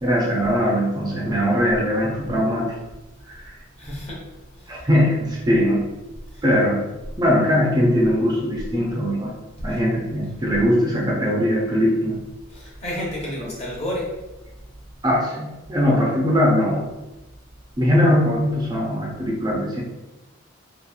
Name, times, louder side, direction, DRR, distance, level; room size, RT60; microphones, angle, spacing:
voice 1, 0.0-2.8 3.3-3.5 4.7-5.8 6.4-6.8 7.2-9.3 9.6-12.2 13.4-13.5 15.0-16.9 17.8-19.8, equal, 20° right, -4 dB, 0.4 m, -20 dB
voice 2, 3.8-4.2 4.7-4.8 6.3-6.5 9.7-9.8 12.5-14.1, left 1 dB, 30° left, -4 dB, 0.8 m, -31 dB
2.8 x 2.3 x 2.3 m, 1.0 s
head